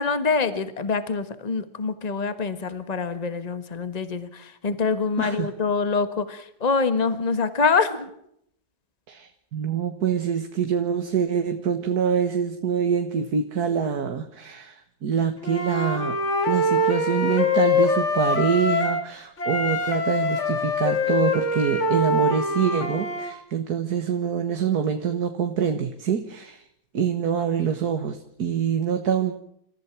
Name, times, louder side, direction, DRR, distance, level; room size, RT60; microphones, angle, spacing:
voice 1, 0.0-8.1, left 4 dB, 25° left, 11 dB, 1.5 m, -25 dB
voice 2, 5.2-5.5 9.1-16.2 16.5-26.6 26.9-29.3, right 7 dB, 70° right, 7 dB, 2.0 m, -25 dB
Wind instrument woodwind instrument, 15.4-19.1 19.4-23.3, left 2 dB, 45° left, 2.8 m, -24 dB
30.0 x 14.5 x 6.1 m, 0.72 s
omnidirectional pair, 1.7 m